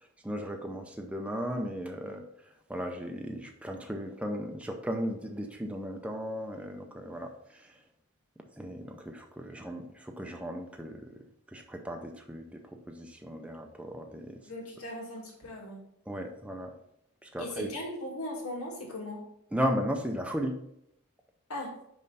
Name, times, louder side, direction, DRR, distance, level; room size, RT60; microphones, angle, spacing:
voice 1, 0.2-2.2 2.7-7.3 8.6-11.0 11.5-12.6 12.9-14.4 16.1-16.7 17.2-17.7 19.5-20.6, equal, 5° right, 3 dB, 0.5 m, -35 dB
voice 2, 14.4-15.9 17.4-19.2 21.5-21.8, left 1 dB, 85° left, -2 dB, 2.2 m, -38 dB
5.5 x 5.2 x 4.0 m, 0.75 s
head